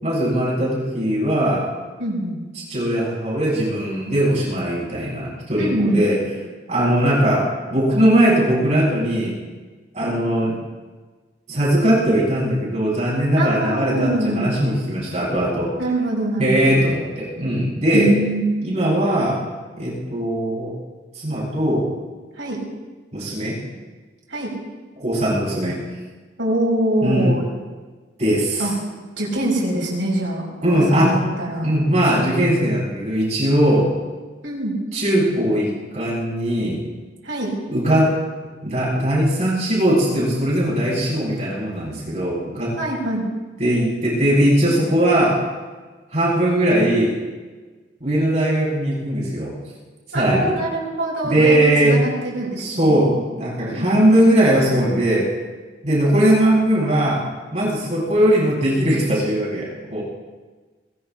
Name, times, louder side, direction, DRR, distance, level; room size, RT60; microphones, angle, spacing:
voice 1, 0.0-1.7 2.7-6.2 6.7-9.3 9.9-10.5 11.5-15.7 16.4-18.1 18.6-19.4 19.7-20.7 21.1-21.9 23.1-23.6 25.0-25.8 27.0-27.3 28.2-28.7 30.6-31.2 31.6-33.9 34.9-36.8 37.7-38.1 38.6-42.7 43.6-45.4 46.1-47.2 48.0-49.5 50.1-50.6 51.2-52.0 52.6-55.3 55.8-57.2 57.5-60.0, right 1 dB, 40° right, -6 dB, 7.1 m, -19 dB
voice 2, 2.0-2.4 5.6-6.0 13.4-14.5 15.8-16.8 17.9-18.4 22.3-22.6 24.3-24.5 26.4-27.5 28.6-28.7 29.2-31.7 34.4-34.8 37.2-37.5 42.8-43.3 50.1-53.1 53.7-54.0, right 1 dB, 85° right, -3 dB, 6.5 m, -24 dB
22.0 x 22.0 x 2.9 m, 1.3 s
head